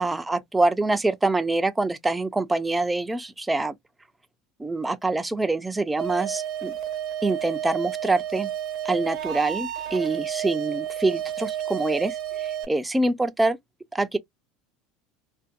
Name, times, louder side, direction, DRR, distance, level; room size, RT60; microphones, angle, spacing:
voice 1, 0.0-3.7 4.6-6.7 7.2-8.5 8.8-13.6 13.9-14.2, right 2 dB, 10° right, 0.4 m, -25 dB
sound 1, 6.0-12.6, right 11 dB, 55° right, 0.7 m, -31 dB
2.6 x 2.2 x 2.4 m
supercardioid pair, 115°, 0 cm